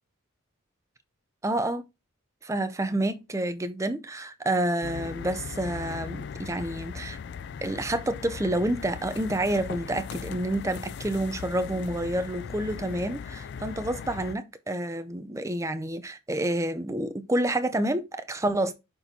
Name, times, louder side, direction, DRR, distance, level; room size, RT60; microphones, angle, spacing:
voice 1, 1.4-1.9 2.4-7.2 7.6-18.7, right 1 dB, 15° right, 0.5 m, -29 dB
sound 1, 4.8-14.3, left 6 dB, 50° left, 0.3 m, -38 dB
11.0 x 4.2 x 2.8 m
head